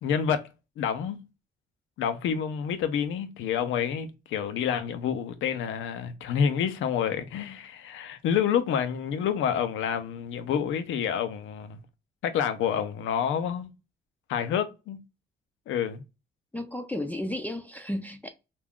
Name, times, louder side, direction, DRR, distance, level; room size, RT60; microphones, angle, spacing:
voice 1, 0.0-0.5 0.8-1.2 2.0-11.8 12.2-13.7 14.3-15.0 15.7-16.0, left 8 dB, 80° left, 0.6 m, -28 dB
voice 2, 16.5-18.3, left 1 dB, 10° left, 0.4 m, -33 dB
2.5 x 2.3 x 3.5 m
cardioid pair, 90°, 20 cm